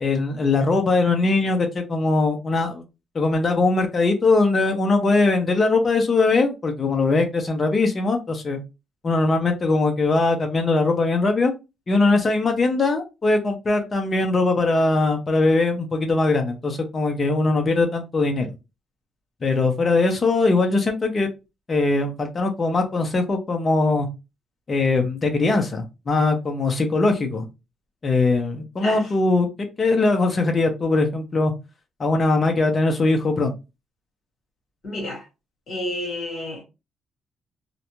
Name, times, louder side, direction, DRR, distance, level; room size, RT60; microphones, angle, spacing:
voice 1, 0.0-2.8 3.1-8.6 9.0-11.5 11.9-18.5 19.4-21.3 21.7-24.1 24.7-27.5 28.0-29.5 29.8-31.5 32.0-33.5, left 3 dB, 25° left, 0.5 m, -21 dB
voice 2, 28.8-29.1 34.8-35.3 35.7-36.6, left 1 dB, 45° left, 1.4 m, -30 dB
2.5 x 2.1 x 2.9 m
cardioid pair, 180°, 0 cm